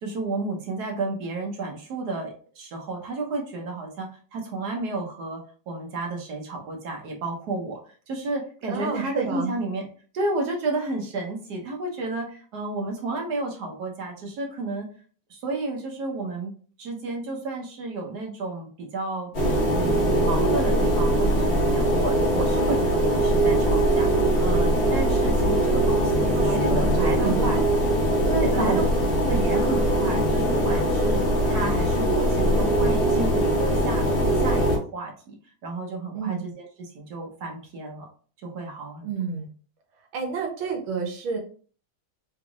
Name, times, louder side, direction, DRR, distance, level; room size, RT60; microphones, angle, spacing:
voice 1, 0.0-5.4 5.7-7.8 8.1-9.8 10.1-14.9 15.3-16.5 16.8-19.3 19.7-27.6 28.3-28.8 29.2-35.4 35.6-38.1 38.4-39.1, right 2 dB, 60° right, 1 dB, 1.3 m, -31 dB
voice 2, 8.7-9.5 26.4-27.6 28.5-28.8 36.1-36.4 39.0-39.5 40.1-41.4, right 5 dB, 75° right, 2 dB, 1.7 m, -29 dB
sound 1, 19.3-34.8, right 1 dB, 35° left, 1.3 m, -22 dB
3.9 x 3.4 x 2.4 m, 0.42 s
omnidirectional pair, 2.2 m